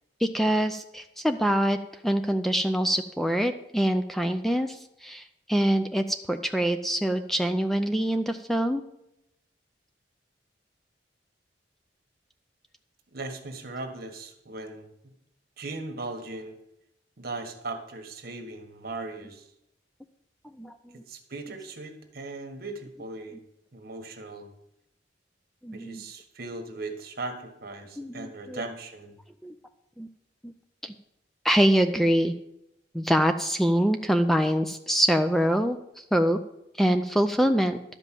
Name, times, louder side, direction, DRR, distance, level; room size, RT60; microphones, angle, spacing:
voice 1, 0.2-1.8 2.0-8.8 20.6-21.0 25.6-26.0 28.0-28.6 29.4-29.5 30.0-30.1 30.4-30.5 30.8-30.9 31.4-32.3 32.9-36.4 36.8-37.8, equal, ahead, 7 dB, 0.4 m, -25 dB
voice 2, 13.1-15.1 15.6-16.6 17.2-19.5 21.1-23.4 23.7-24.5 25.7-29.2, right 2 dB, 55° right, 5 dB, 1.5 m, -38 dB
12.0 x 5.4 x 7.5 m, 0.83 s
head